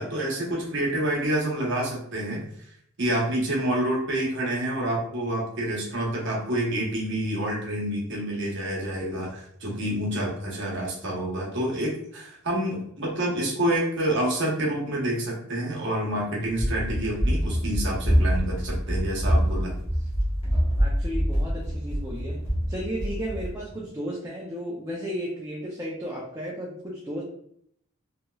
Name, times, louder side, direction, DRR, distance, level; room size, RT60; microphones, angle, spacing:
voice 1, 0.0-2.4 3.0-19.7, right 1 dB, 55° right, -3 dB, 0.9 m, -28 dB
Run, 16.5-23.5, equal, 25° left, 1.0 m, -25 dB
voice 2, 20.8-22.4 22.7-27.2, equal, 15° right, -4 dB, 0.4 m, -34 dB
2.9 x 2.8 x 2.3 m, 0.70 s
head